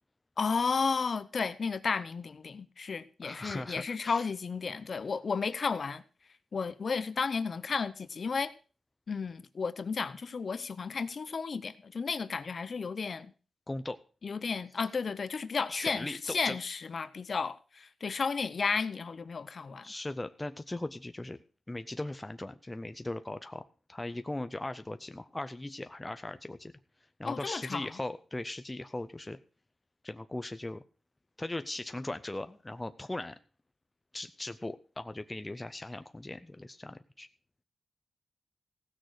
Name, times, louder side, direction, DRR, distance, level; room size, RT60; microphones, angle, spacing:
voice 1, 0.4-6.0 6.5-8.5 9.1-13.3 14.2-19.9 27.2-27.9, left 5 dB, 45° left, 0.8 m, -33 dB
voice 2, 3.2-4.3 13.7-14.0 15.7-16.6 19.8-21.4 21.7-26.7 27.2-29.4 30.0-30.8 31.4-33.4 34.1-37.3, left 2 dB, 15° left, 0.5 m, -39 dB
16.0 x 6.4 x 6.4 m
wide cardioid pair, 155°, 0 cm